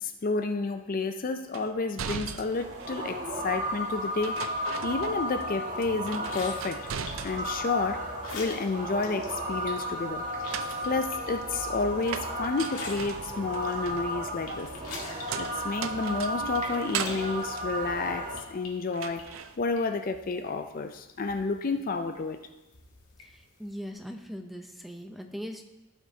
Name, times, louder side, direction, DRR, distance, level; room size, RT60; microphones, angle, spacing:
voice 1, 0.0-6.9 7.2-10.3 10.9-14.7 15.4-19.2 19.6-22.4, left 3 dB, 40° left, 8 dB, 0.4 m, -31 dB
sound 1, 1.5-3.2 4.2-5.5 5.8-7.7 8.0-8.9 10.2-18.6 18.9-19.6, right 7 dB, 65° right, 0.5 m, -39 dB
sound 2, 2.5-18.4, equal, 35° right, 1.6 m, -34 dB
sound 3, 6.1-23.9, left 3 dB, 85° left, 1.8 m, -47 dB
voice 2, 23.6-25.7, equal, ahead, 4 dB, 0.6 m, -39 dB
15.5 x 5.9 x 2.8 m, 1.0 s
head